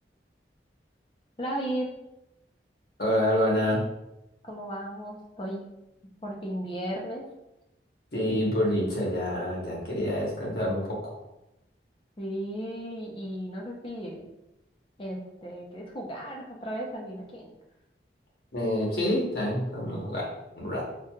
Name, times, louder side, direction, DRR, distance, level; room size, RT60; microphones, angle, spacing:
voice 1, 1.4-1.9 4.4-5.6 6.2-7.2 12.2-14.2 15.0-17.5, right 1 dB, 30° left, -1 dB, 0.6 m, -35 dB
voice 2, 3.0-3.8 8.1-11.1 18.5-20.3 20.5-20.8, left 1 dB, 60° left, -4 dB, 1.0 m, -27 dB
4.4 x 2.4 x 2.3 m, 0.90 s
head